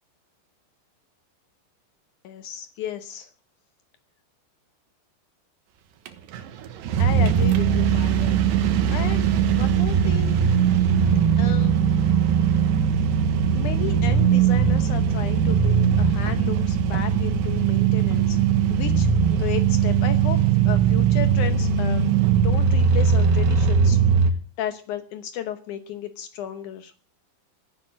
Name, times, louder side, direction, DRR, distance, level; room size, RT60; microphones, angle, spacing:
voice 1, 2.2-3.3 7.0-8.4 8.9-10.4 11.4-11.7 13.6-18.4 18.7-20.4 20.7-22.1 22.4-24.0 24.6-26.9, left 10 dB, 80° left, 9 dB, 1.7 m, -34 dB
sound 1, 6.1-6.2 6.3-24.3, right 7 dB, 75° right, 3.4 m, -20 dB
16.0 x 10.5 x 7.5 m, 0.42 s
omnidirectional pair, 5.0 m